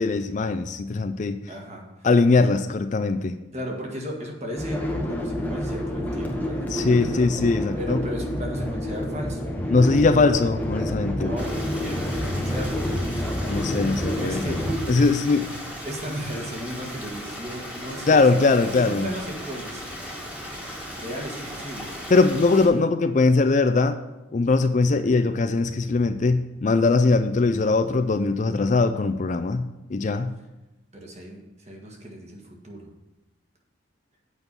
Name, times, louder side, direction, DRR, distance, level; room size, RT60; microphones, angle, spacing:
voice 1, 0.0-1.4 2.0-3.4 6.7-8.0 9.7-11.3 13.5-14.5 14.9-15.4 18.1-19.1 22.1-24.0 24.3-30.3, left 3 dB, 35° left, 9 dB, 0.4 m, -21 dB
voice 2, 1.5-2.1 3.5-7.3 7.7-10.2 11.2-12.9 14.0-18.4 18.7-20.0 20.9-21.9 30.9-32.9, equal, 35° right, 0 dB, 1.6 m, -36 dB
sound 1, 4.5-14.8, equal, 10° left, 0.9 m, -28 dB
Stream, 11.4-22.7, equal, 5° right, 1.6 m, -37 dB
8.1 x 5.5 x 6.9 m, 1.0 s
head